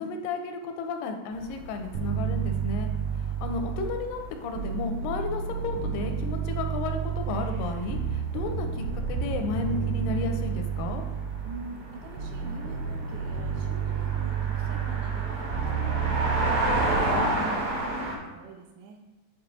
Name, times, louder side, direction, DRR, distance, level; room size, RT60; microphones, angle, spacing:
voice 1, 0.0-2.9 3.4-11.0, left 4 dB, 85° left, 5 dB, 2.2 m, -33 dB
sound 1, 1.3-18.1, right 1 dB, 55° right, 1.7 m, -34 dB
sound 2, 1.9-4.1 4.6-11.7 12.2-17.2, right 8 dB, 85° right, 2.4 m, -30 dB
sound 3, 8.3-10.2 12.0-13.9 15.7-17.6, left 3 dB, 35° right, 1.2 m, -49 dB
voice 2, 11.4-19.0, right 3 dB, 70° right, 1 dB, 2.1 m, -44 dB
8.5 x 3.6 x 4.0 m, 1.1 s
omnidirectional pair, 3.9 m